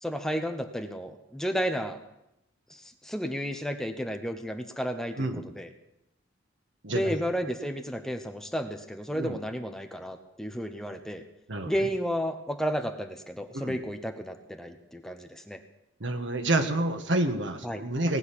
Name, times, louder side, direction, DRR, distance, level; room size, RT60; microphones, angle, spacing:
voice 1, 0.0-2.0 2.7-5.7 6.9-11.2 11.7-15.6 17.6-17.8, equal, 5° left, 6 dB, 1.0 m, -32 dB
voice 2, 6.8-7.2 9.1-9.4 11.5-11.9 13.5-13.8 16.0-18.2, right 2 dB, 75° right, 6 dB, 1.6 m, -29 dB
18.5 x 6.6 x 9.9 m, 0.87 s
head